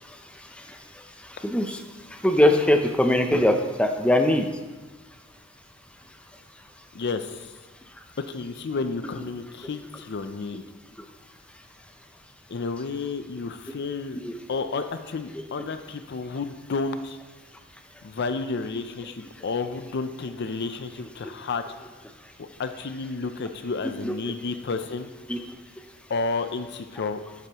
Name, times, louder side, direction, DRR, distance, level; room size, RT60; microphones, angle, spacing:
voice 1, 1.4-1.8 2.2-4.5 14.2-14.3 24.0-24.1 25.3-25.4, left 1 dB, 5° left, 5 dB, 0.6 m, -21 dB
voice 2, 6.9-7.5 8.3-10.6 12.5-14.2 14.5-17.2 18.0-21.6 22.4-25.1 26.1-27.2, left 4 dB, 50° left, 9 dB, 0.5 m, -31 dB
10.5 x 8.1 x 3.0 m, 1.3 s
head